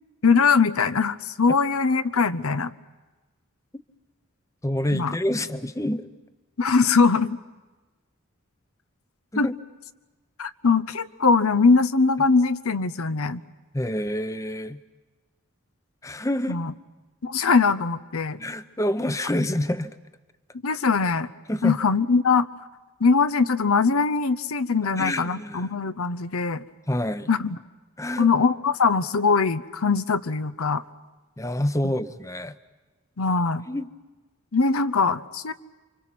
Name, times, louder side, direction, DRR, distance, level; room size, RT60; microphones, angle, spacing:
voice 1, 0.2-2.7 4.9-5.1 6.6-7.4 9.4-9.5 10.4-13.4 16.5-16.7 17.2-18.4 20.6-21.3 21.6-22.5 23.0-26.6 27.3-27.6 28.2-30.8 33.2-33.6 34.5-35.5, left 4 dB, 90° left, 12 dB, 0.8 m, -21 dB
voice 2, 4.6-6.1 9.3-9.6 13.7-14.8 16.0-16.6 18.4-20.0 21.5-21.8 25.0-25.7 26.9-27.3 28.0-28.3 31.4-32.6 33.7-33.9, left 1 dB, 15° left, 12 dB, 0.7 m, -27 dB
29.0 x 25.0 x 6.0 m, 1.2 s
head